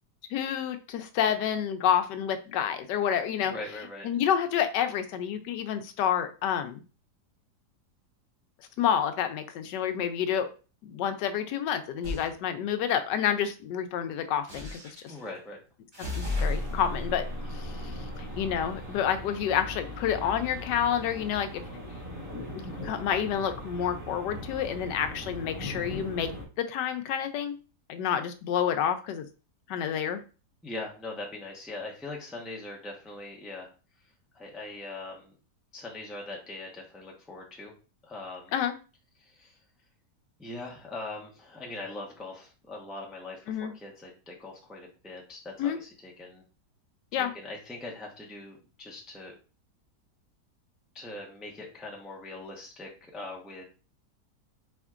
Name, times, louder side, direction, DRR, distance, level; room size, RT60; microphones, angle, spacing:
voice 1, 0.3-3.5 4.0-6.8 8.8-10.5 10.8-15.1 16.0-17.3 17.5-21.6 22.5-26.3 26.6-27.6 27.9-29.3 29.7-30.2 38.5-38.7 43.5-43.7 45.6-45.8 47.1-47.3, left 9 dB, 85° left, 9 dB, 1.2 m, -29 dB
voice 2, 3.4-4.1 15.1-15.6 30.6-33.7 34.3-35.3 35.7-37.7 38.0-38.5 39.2-39.6 40.4-46.4 47.1-49.3 50.9-53.6, left 2 dB, ahead, -2 dB, 0.5 m, -41 dB
sound 1, 12.0-12.3 14.5-15.2 15.9-18.6, left 2 dB, 45° right, 2.0 m, -34 dB
sound 2, 16.2-26.4, left 1 dB, 20° right, 1.2 m, -40 dB
4.3 x 4.3 x 2.4 m, 0.35 s
omnidirectional pair, 1.8 m